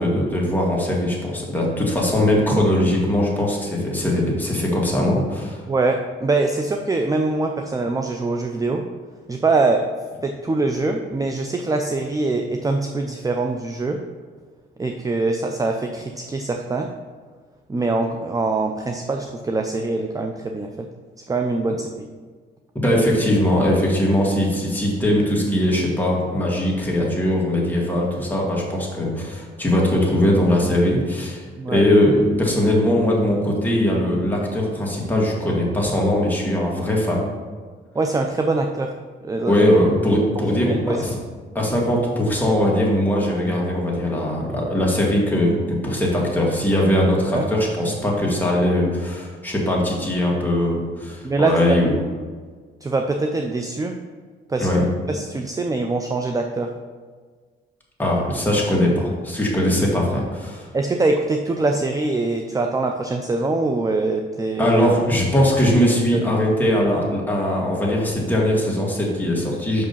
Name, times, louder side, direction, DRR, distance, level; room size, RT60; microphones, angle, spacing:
voice 1, 0.0-5.6 22.8-31.4 31.7-37.2 39.5-41.1 41.5-51.9 54.6-54.9 58.0-60.7 64.6-69.9, left 1 dB, 10° left, -4 dB, 2.2 m, -20 dB
voice 2, 5.7-8.8 9.3-9.8 10.2-14.0 14.8-16.9 17.7-20.9 21.3-22.0 31.6-31.8 37.9-38.9 39.2-39.6 40.7-41.0 47.3-47.5 51.2-51.8 52.8-54.0 54.5-54.7 55.1-56.7 60.7-64.7 66.1-66.2, right 3 dB, 15° right, 4 dB, 0.5 m, -23 dB
6.0 x 5.1 x 5.5 m, 1.5 s
cardioid pair, 90°, 20 cm